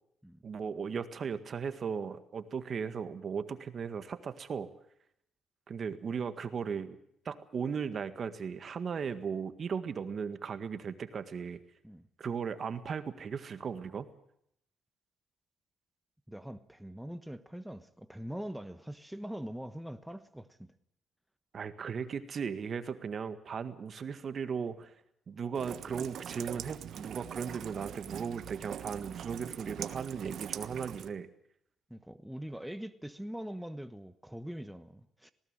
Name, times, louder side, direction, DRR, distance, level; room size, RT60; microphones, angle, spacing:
voice 1, 0.4-4.7 5.7-7.0 7.3-11.6 12.2-14.1 21.5-24.9 25.3-31.3, right 6 dB, 50° right, 1.8 m, -37 dB
voice 2, 16.3-20.7 31.9-35.3, equal, 5° right, 1.2 m, -43 dB
Rain, 25.5-31.1, right 9 dB, 70° right, 1.3 m, -42 dB
19.5 x 18.0 x 9.0 m
cardioid pair, 90°, 0 cm